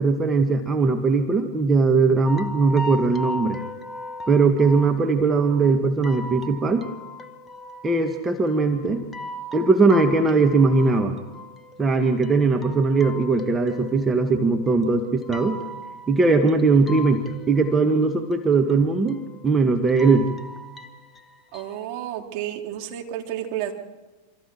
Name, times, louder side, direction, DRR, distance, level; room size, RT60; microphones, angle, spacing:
voice 1, 0.0-3.6 4.3-6.8 7.8-9.0 9.5-11.1 11.8-15.6 16.1-19.2 19.4-20.3, right 4 dB, 15° right, 4 dB, 1.7 m, -20 dB
sound 1, 2.3-21.8, left 1 dB, 15° left, 1.4 m, -38 dB
voice 2, 21.5-23.7, right 11 dB, 45° right, 2 dB, 3.2 m, -31 dB
27.5 x 26.0 x 4.6 m, 1.2 s
figure-of-eight pair, 90°, 0 cm